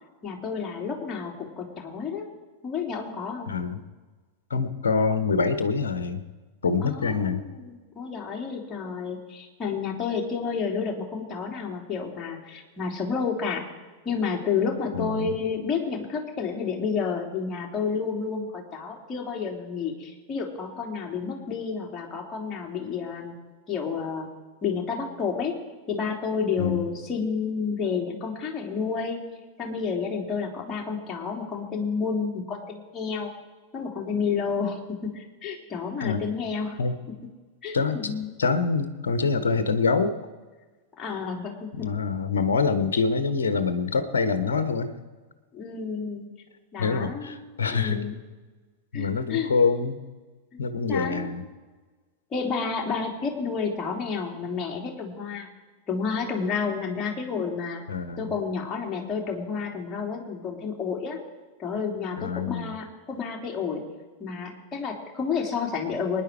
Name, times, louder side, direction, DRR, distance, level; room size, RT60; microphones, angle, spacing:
voice 1, 0.2-2.2 2.6-3.5 6.8-13.6 14.0-23.3 23.7-24.3 24.6-25.5 25.9-29.2 29.6-33.3 33.7-36.8 37.6-38.3 41.0-41.9 45.5-46.3 46.7-47.4 47.7-48.2 48.9-49.5 50.9-51.3 52.3-55.5 55.9-57.8 58.2-61.2 61.6-63.8 64.2-66.2, left 5 dB, 25° left, -1 dB, 3.3 m, -30 dB
voice 2, 3.5-3.8 4.5-6.2 6.6-7.4 14.9-15.3 26.6-26.9 36.0-36.2 36.8-37.0 37.7-38.1 38.4-40.1 41.7-44.9 46.8-48.0 48.9-50.0 50.6-51.4 57.9-58.3 62.2-62.7, left 4 dB, 65° left, 10 dB, 1.3 m, -25 dB
24.0 x 10.5 x 4.7 m, 1.3 s
figure-of-eight pair, 90°, 0 cm